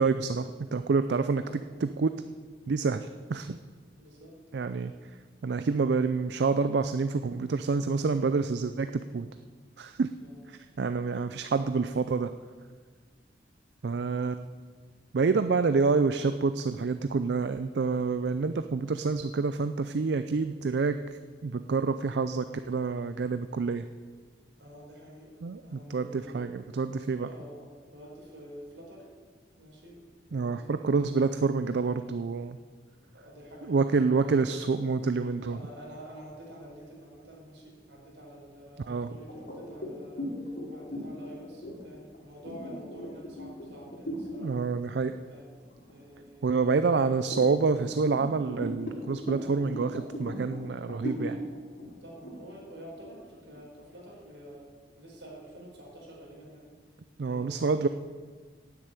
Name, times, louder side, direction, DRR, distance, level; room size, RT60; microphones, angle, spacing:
voice 1, 0.0-1.4 1.8-2.2 2.7-3.6 4.5-4.9 5.4-9.3 9.8-10.1 10.5-12.3 13.8-14.4 15.1-21.0 21.4-23.8 25.4-27.3 30.3-32.6 33.7-35.6 38.9-39.1 44.4-45.2 46.4-51.4 57.2-57.9, right 4 dB, 65° right, 10 dB, 0.4 m, -27 dB
voice 2, 1.3-1.9 4.0-4.4 10.2-10.5 24.6-26.5 27.3-29.1 29.6-30.0 30.3-31.2 33.1-34.6 35.4-44.6 45.3-45.5 45.9-47.2 52.0-54.7 55.0-56.7 57.2-57.9, equal, 85° right, -3 dB, 4.8 m, -48 dB
sound 1, 39.3-44.4 44.9-45.1 45.5-46.4 46.9-53.6, equal, 65° left, 3.1 m, -38 dB
9.6 x 8.1 x 9.1 m, 1.5 s
head